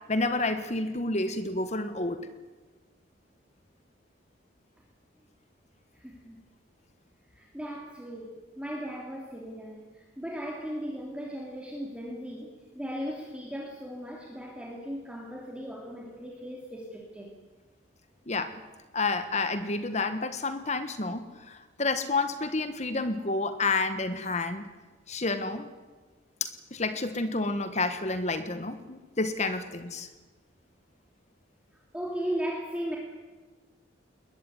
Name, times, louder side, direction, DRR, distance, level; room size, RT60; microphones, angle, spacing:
voice 1, 0.1-2.3 18.3-18.6 18.9-24.7 25.1-25.7 26.4-30.1, left 3 dB, 35° left, 10 dB, 1.4 m, -30 dB
voice 2, 5.9-6.4 7.3-17.3 31.9-33.0, equal, 5° right, -2 dB, 3.0 m, -37 dB
21.0 x 21.0 x 9.4 m, 1.3 s
head